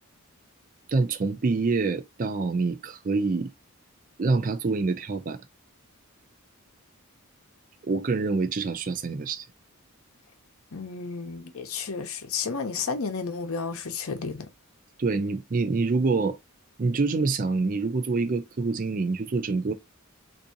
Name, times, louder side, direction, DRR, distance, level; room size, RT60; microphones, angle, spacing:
voice 1, 0.9-3.5 4.2-5.4 7.8-9.5 15.0-16.4 16.8-19.7, right 3 dB, 40° right, 0.4 m, -26 dB
voice 2, 10.7-14.5, left 5 dB, 70° left, 0.7 m, -32 dB
3.6 x 2.6 x 2.7 m
head